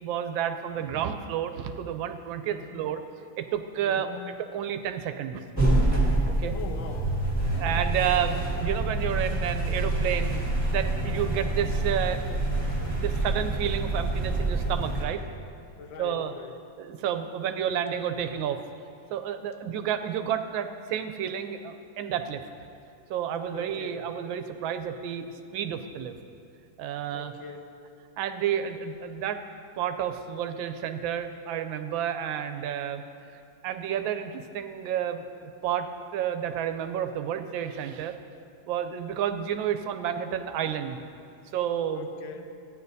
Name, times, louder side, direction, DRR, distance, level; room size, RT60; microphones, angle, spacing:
voice 1, 0.0-3.0 3.4-5.4 6.4-6.5 7.5-15.2 16.0-16.3 16.8-18.6 19.1-22.4 23.1-26.1 26.8-27.3 28.2-29.4 29.8-33.0 33.3-35.2 35.6-35.9 36.1-38.2 38.7-41.0 41.5-42.1, right 9 dB, 80° right, 8 dB, 1.3 m, -30 dB
voice 2, 2.5-2.8 3.8-4.3 6.5-7.1 15.8-16.5 23.5-24.0 27.1-27.7 41.9-42.5, left 5 dB, 80° left, 5 dB, 1.4 m, -42 dB
sound 1, 5.6-15.0, right 2 dB, 10° left, 1.4 m, -27 dB
14.5 x 9.8 x 2.7 m, 2.4 s
omnidirectional pair, 2.1 m